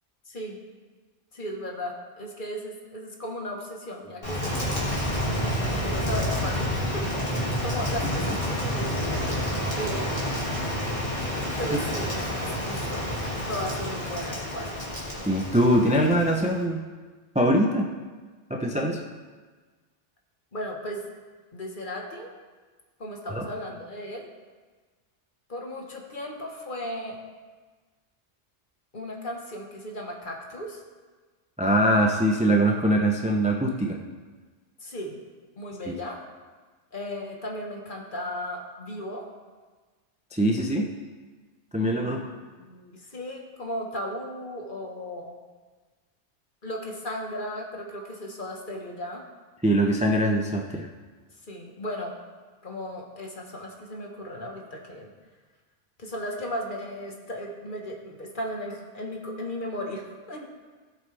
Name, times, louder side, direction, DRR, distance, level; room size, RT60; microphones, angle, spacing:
voice 1, 0.3-0.6 1.3-5.1 5.4-10.7 11.6-13.2 13.5-14.8 20.5-21.0 21.5-22.3 23.0-24.3 25.5-27.2 28.9-30.8 34.8-35.2 35.6-36.2 36.9-39.3 42.0-45.4 46.6-49.2 51.5-52.1 52.6-55.1 56.0-60.5, equal, 45° left, 0 dB, 1.5 m, -36 dB
Rain, 4.2-16.6, equal, 25° left, 2.4 m, -29 dB
voice 2, 15.3-16.8 17.3-17.9 18.5-19.0 23.3-23.5 31.6-34.0 35.9-36.0 40.3-40.9 41.7-42.2 49.6-50.9, right 1 dB, 10° right, 0 dB, 0.6 m, -22 dB
16.5 x 7.5 x 3.4 m, 1.4 s
omnidirectional pair, 1.2 m